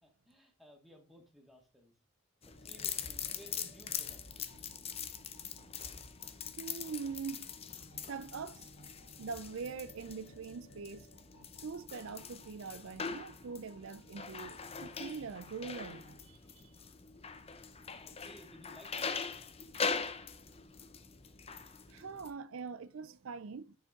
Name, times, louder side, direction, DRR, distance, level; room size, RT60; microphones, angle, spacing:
voice 1, 0.0-1.9 2.5-4.5 17.5-19.1, equal, ahead, 1.8 m, -58 dB
sound 1, 2.4-22.3, left 6 dB, 25° left, 0.7 m, -42 dB
sound 2, 2.5-16.3, right 1 dB, 85° left, 3.6 m, -61 dB
voice 2, 6.6-7.5 8.1-8.7 9.2-11.1 11.6-16.7 21.9-23.7, right 5 dB, 65° right, 0.5 m, -43 dB
9.8 x 5.2 x 3.7 m
head